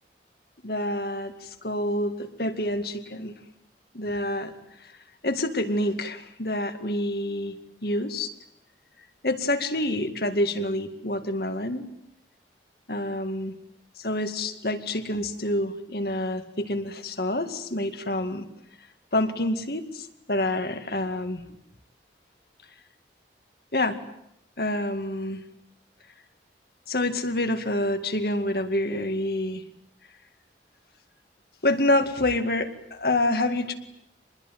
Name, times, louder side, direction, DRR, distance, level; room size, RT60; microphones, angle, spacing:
voice 1, 0.6-3.3 3.9-4.5 5.2-7.5 7.8-8.3 9.2-11.9 12.9-13.5 14.0-18.5 19.1-21.4 23.7-24.0 24.6-25.4 26.9-29.6 31.6-33.7, left 1 dB, 55° left, 8 dB, 2.2 m, -27 dB
26.5 x 21.0 x 9.3 m, 0.78 s
head